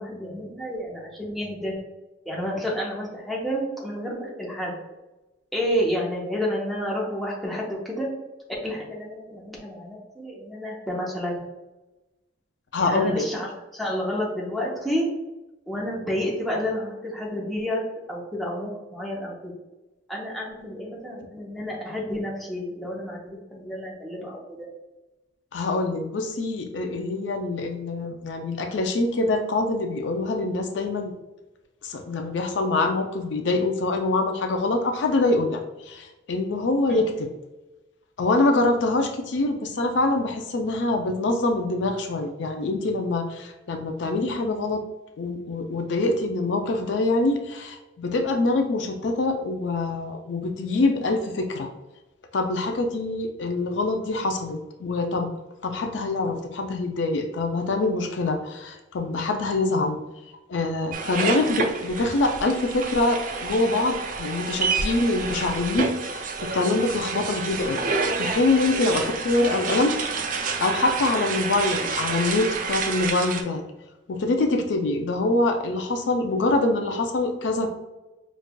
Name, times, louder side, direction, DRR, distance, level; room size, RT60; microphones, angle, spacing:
voice 1, 0.0-1.8 2.2-4.8 5.5-8.1 8.6-11.4 12.8-15.1 15.7-19.5 20.1-24.7 36.9-37.0, equal, ahead, -4 dB, 0.7 m, -30 dB
voice 2, 12.7-13.2 25.5-31.1 31.8-37.3 38.2-44.8 45.2-51.7 52.3-55.3 55.6-60.0 60.5-67.8 68.2-69.9 70.6-73.6 74.1-77.7, left 2 dB, 65° left, 5 dB, 0.4 m, -25 dB
sound 1, 60.9-73.4, right 4 dB, 45° right, 0.4 m, -29 dB
5.1 x 2.4 x 2.2 m, 1.0 s
head